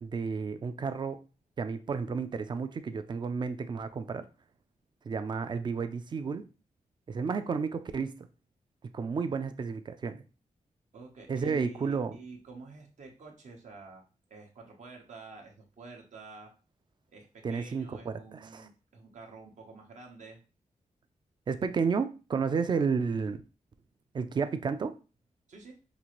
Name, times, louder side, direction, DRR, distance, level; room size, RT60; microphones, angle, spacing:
voice 1, 0.0-1.2 1.6-4.2 5.0-6.5 7.1-8.1 8.9-10.2 11.3-12.1 17.4-18.7 21.5-23.4 24.1-24.9, right 5 dB, 35° right, 10 dB, 0.4 m, -31 dB
voice 2, 10.9-16.5 17.1-20.4 25.5-25.8, right 4 dB, 65° right, 1 dB, 0.9 m, -49 dB
5.2 x 2.5 x 3.0 m, 0.33 s
wide cardioid pair, 175°, 13 cm